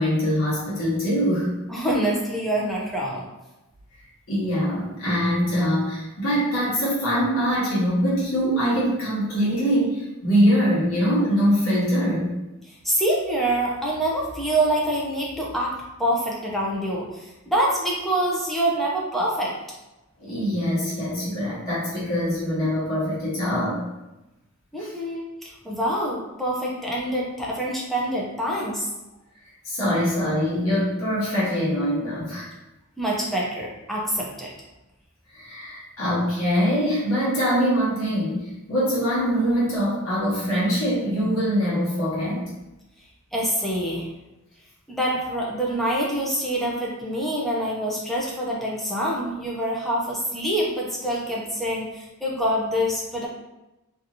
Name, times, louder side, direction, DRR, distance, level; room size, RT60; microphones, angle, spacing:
voice 1, 0.0-1.5 4.3-12.3 20.2-23.8 24.8-24.9 29.6-32.5 35.3-42.5, equal, 80° left, -8 dB, 1.1 m, -23 dB
voice 2, 1.7-3.3 12.7-19.6 24.7-28.9 33.0-34.5 43.3-44.1 44.9-53.3, right 1 dB, ahead, -5 dB, 0.6 m, -26 dB
2.8 x 2.6 x 2.6 m, 0.98 s
head